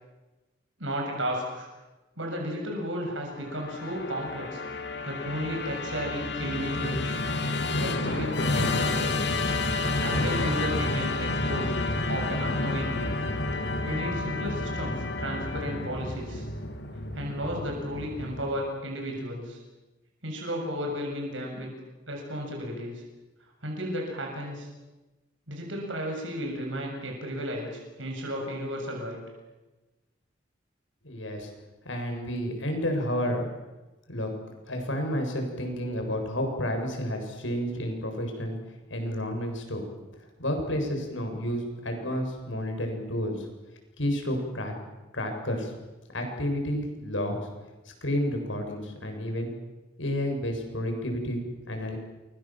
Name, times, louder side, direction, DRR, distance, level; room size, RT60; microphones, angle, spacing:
voice 1, 0.8-1.7 2.2-4.6 5.1-7.2 7.8-9.3 9.8-11.7 12.1-13.1 13.8-16.5 17.1-19.6 20.2-21.7 22.1-23.0 23.6-24.7 25.5-29.2, equal, 80° right, 1 dB, 7.3 m, -34 dB
Musical instrument, 3.4-18.7, left 2 dB, 60° left, 2.2 m, -30 dB
voice 2, 31.0-31.5 31.8-33.5 34.1-34.3 34.7-38.6 38.9-39.9 40.4-43.5 44.0-44.7 45.1-45.7 46.1-47.5 48.0-49.5 50.0-52.0, equal, 80° left, 3 dB, 7.5 m, -30 dB
29.5 x 24.5 x 7.7 m, 1.1 s
head